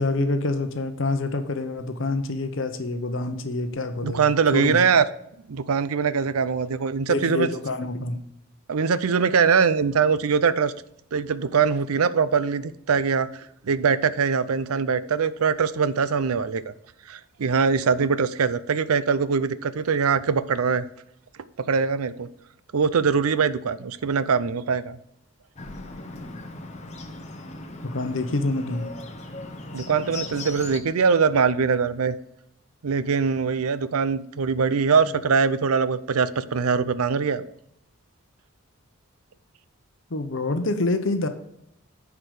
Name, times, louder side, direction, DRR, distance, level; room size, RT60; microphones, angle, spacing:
voice 1, 0.0-4.8 7.1-8.2 27.8-28.9 40.1-41.3, left 2 dB, 60° left, 0.8 m, -26 dB
voice 2, 4.0-5.0 5.5-7.5 8.7-10.7 11.1-13.3 13.6-16.7 17.1-20.9 21.7-22.3 22.7-25.0 29.7-32.1 32.8-37.5, right 5 dB, 90° right, 0.5 m, -22 dB
Bird, 25.6-30.8, left 2 dB, 30° left, 0.9 m, -38 dB
9.8 x 4.8 x 6.5 m
head